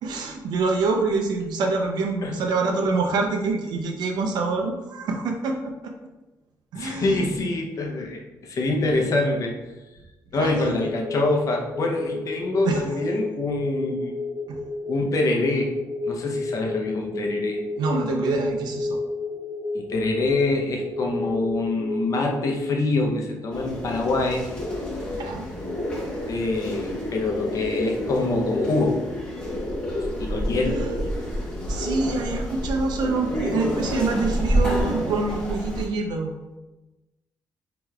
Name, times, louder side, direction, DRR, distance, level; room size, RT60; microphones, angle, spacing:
voice 1, 0.0-5.9 6.7-7.3 10.4-10.8 12.7-12.8 14.5-14.6 17.8-19.0 25.1-25.4 31.7-36.3, right 3 dB, 85° right, 2 dB, 0.6 m, -26 dB
voice 2, 6.7-9.5 10.3-14.1 14.9-15.7 16.0-17.6 19.7-24.4 26.3-29.0 30.2-30.8, left 2 dB, 50° left, 1 dB, 0.7 m, -25 dB
sound 1, 10.7-22.7, left 2 dB, 45° right, 0.7 m, -31 dB
sound 2, 23.5-35.9, equal, 15° left, 1.1 m, -28 dB
4.8 x 3.0 x 2.4 m, 1.1 s
cardioid pair, 105°, 7 cm